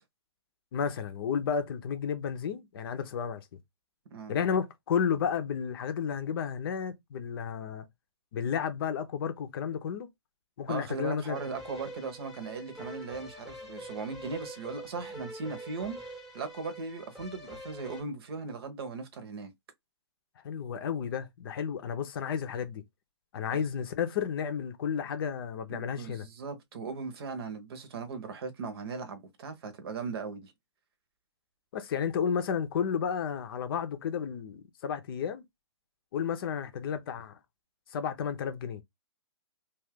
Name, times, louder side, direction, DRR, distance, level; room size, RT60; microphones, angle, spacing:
voice 1, 0.7-3.5 4.3-7.9 8.3-10.1 10.6-11.4 20.4-22.8 23.3-26.3 31.7-35.4 36.1-37.4 37.9-38.8, left 7 dB, 50° left, 0.6 m, -32 dB
voice 2, 10.7-16.0 16.3-19.5 23.5-23.6 25.7-30.5, right 4 dB, 55° right, 0.9 m, -38 dB
sound 1, 11.3-18.0, right 1 dB, ahead, 0.9 m, -45 dB
2.4 x 2.4 x 3.4 m
hypercardioid pair, 130°, 15 cm